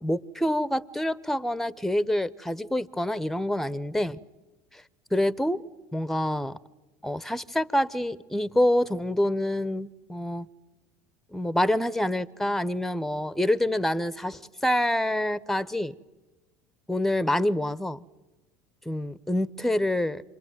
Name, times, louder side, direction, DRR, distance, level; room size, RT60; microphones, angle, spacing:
voice 1, 0.0-4.2 4.7-4.8 5.1-5.6 5.9-6.6 7.0-10.5 11.3-15.9 16.9-18.0 18.9-20.2, left 1 dB, 5° left, 0.8 m, -26 dB
27.5 x 22.5 x 9.3 m
supercardioid pair, 105°, 8 cm